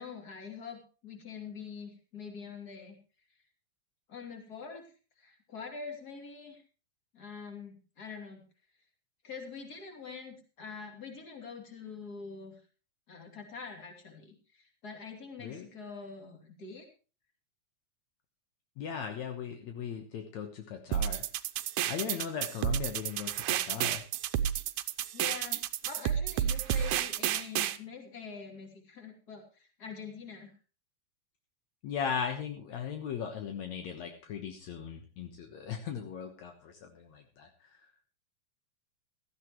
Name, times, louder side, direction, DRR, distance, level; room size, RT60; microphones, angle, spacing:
voice 1, 0.0-2.9 4.1-4.9 5.2-6.6 7.1-8.4 9.2-12.6 13.1-16.8 25.1-30.5, left 5 dB, 30° left, 3 dB, 3.3 m, -45 dB
voice 2, 18.8-21.2 21.9-24.0 31.8-37.8, left 7 dB, 70° left, 4 dB, 2.5 m, -38 dB
sound 1, 20.9-27.8, right 10 dB, 85° right, 2.2 m, -31 dB
16.5 x 13.5 x 3.1 m, 0.34 s
omnidirectional pair, 3.4 m